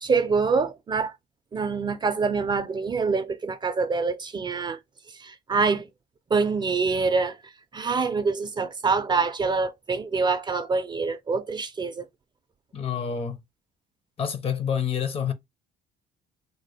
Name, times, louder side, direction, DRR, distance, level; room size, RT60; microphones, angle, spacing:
voice 1, 0.0-1.1 1.5-4.8 5.2-5.9 6.3-7.4 7.7-12.1, right 4 dB, 25° right, 0.4 m, -25 dB
voice 2, 12.7-13.4 14.2-15.3, left 7 dB, 35° left, 0.6 m, -27 dB
3.7 x 2.1 x 3.2 m
cardioid pair, 110°, 17 cm